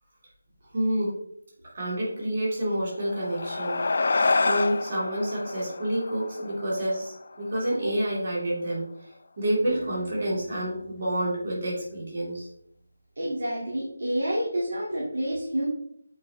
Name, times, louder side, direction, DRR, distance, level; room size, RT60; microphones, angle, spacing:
voice 1, 0.7-1.1 1.7-8.9 9.4-12.5, right 1 dB, 30° right, -5 dB, 2.2 m, -28 dB
sound 1, 2.9-7.7, left 3 dB, 40° left, 0.4 m, -28 dB
Acoustic guitar, 9.7-12.7, right 2 dB, 50° right, 1.0 m, -45 dB
voice 2, 13.2-15.7, right 1 dB, 65° right, -5 dB, 2.2 m, -28 dB
7.2 x 4.7 x 3.3 m, 0.70 s
figure-of-eight pair, 180°, 0 cm